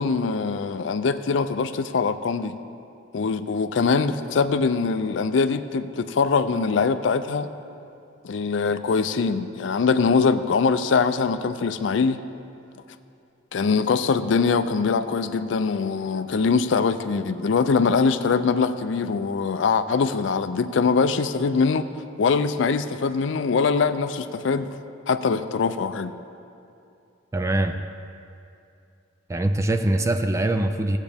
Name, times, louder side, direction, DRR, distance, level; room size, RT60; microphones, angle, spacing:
voice 1, 0.0-2.6 3.1-7.5 8.2-12.2 13.5-21.9 22.2-24.7 25.1-26.1, left 5 dB, 80° left, 11 dB, 0.4 m, -22 dB
voice 2, 27.3-27.8 29.3-31.0, right 1 dB, 15° right, 8 dB, 0.3 m, -23 dB
15.0 x 8.2 x 3.5 m, 2.6 s
head